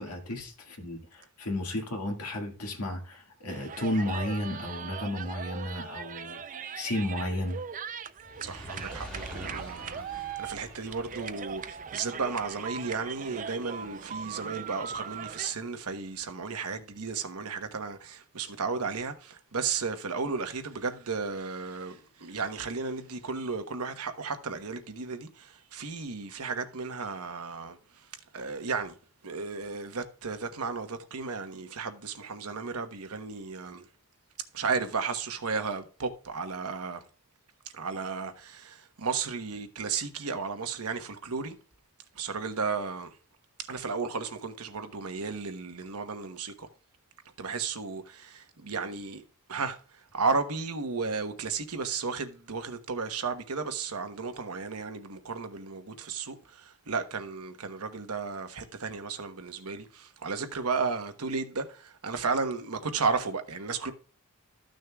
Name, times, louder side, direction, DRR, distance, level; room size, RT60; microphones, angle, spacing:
voice 1, 0.0-6.4 6.7-7.6, left 1 dB, 80° left, 1.9 m, -33 dB
sound 1, 3.5-15.5, right 7 dB, 35° right, 0.5 m, -40 dB
Fire, 8.1-14.6 15.3-15.4, equal, 5° left, 1.7 m, -47 dB
voice 2, 8.4-27.8 28.3-29.0 29.2-33.9 34.5-37.0 37.7-41.5 42.1-43.1 43.7-46.7 47.4-49.2 49.5-49.8 50.1-63.9, right 4 dB, 75° right, 1.1 m, -34 dB
13.5 x 6.4 x 2.3 m
head